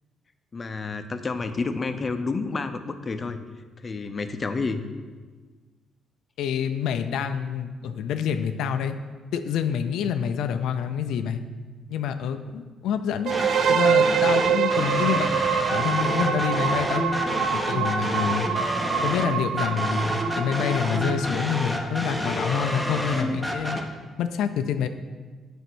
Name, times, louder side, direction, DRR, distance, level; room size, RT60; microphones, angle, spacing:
voice 1, 0.5-3.4 3.8-4.8, left 4 dB, 35° left, 9 dB, 0.7 m, -29 dB
voice 2, 6.4-8.9 9.3-11.4 11.9-13.3 13.7-15.3 15.7-17.0 17.5-18.5 19.0-23.8 24.2-24.9, left 7 dB, 85° left, 8 dB, 0.4 m, -27 dB
sound 1, 13.3-23.8, equal, 5° right, 1.1 m, -29 dB
sound 2, 13.3-21.1, right 8 dB, 70° right, 0.3 m, -25 dB
8.1 x 4.4 x 6.1 m, 1.4 s
cardioid pair, 90°, 0 cm